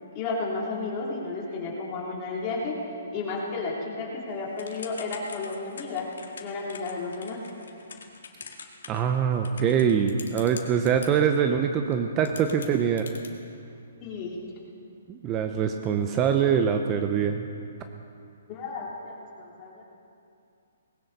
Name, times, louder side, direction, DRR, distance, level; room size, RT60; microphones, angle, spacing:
voice 1, 0.1-2.8 3.1-6.1 6.4-7.4 14.0-14.4 18.5-19.8, left 3 dB, 25° left, -4 dB, 3.2 m, -32 dB
Typing / Telephone, 4.6-11.1 11.9-12.0 12.2-13.3, left 6 dB, 80° left, 1.9 m, -43 dB
voice 2, 8.9-13.1 15.1-17.5, right 7 dB, 20° right, 6 dB, 0.6 m, -24 dB
19.5 x 17.5 x 4.1 m, 2.5 s
hypercardioid pair, 160°, 0 cm